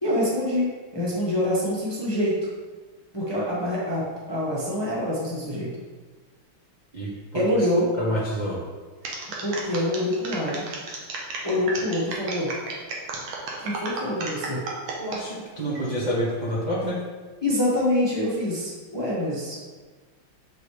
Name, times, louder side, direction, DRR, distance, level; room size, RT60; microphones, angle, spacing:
voice 1, 0.0-2.4 3.1-5.7 7.3-7.9 9.4-10.6 11.4-12.5 13.6-14.6 17.4-19.6, left 1 dB, 15° left, -7 dB, 0.8 m, -25 dB
voice 2, 6.9-7.7 8.0-8.6 15.0-17.0, equal, 35° right, -7 dB, 0.6 m, -28 dB
sound 1, 9.0-15.2 15.7-16.1, right 3 dB, 80° right, 1.8 m, -33 dB
6.4 x 5.2 x 3.2 m, 1.4 s
omnidirectional pair, 2.4 m